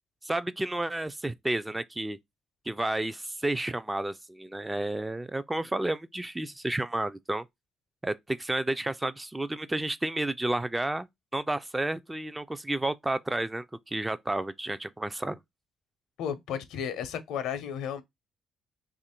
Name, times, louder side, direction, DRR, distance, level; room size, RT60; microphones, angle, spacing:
voice 1, 0.2-2.2 2.7-7.4 8.0-11.1 11.3-15.4, right 1 dB, 15° right, 0.3 m, -31 dB
voice 2, 16.2-18.0, left 8 dB, 90° left, 0.6 m, -33 dB
3.0 x 2.5 x 4.3 m
cardioid pair, 90°, 0 cm